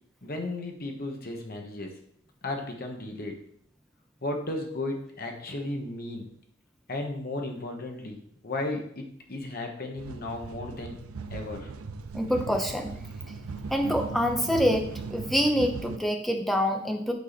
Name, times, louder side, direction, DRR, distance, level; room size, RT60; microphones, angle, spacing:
voice 1, 0.2-2.0 2.4-3.4 4.2-6.3 6.9-11.0 11.3-11.7, left 2 dB, 45° left, 3 dB, 1.3 m, -34 dB
sound 1, 10.0-16.0, right 4 dB, 85° right, 0.5 m, -38 dB
voice 2, 12.1-12.9 13.7-17.1, equal, ahead, 3 dB, 0.8 m, -26 dB
8.4 x 4.6 x 4.2 m, 0.68 s
head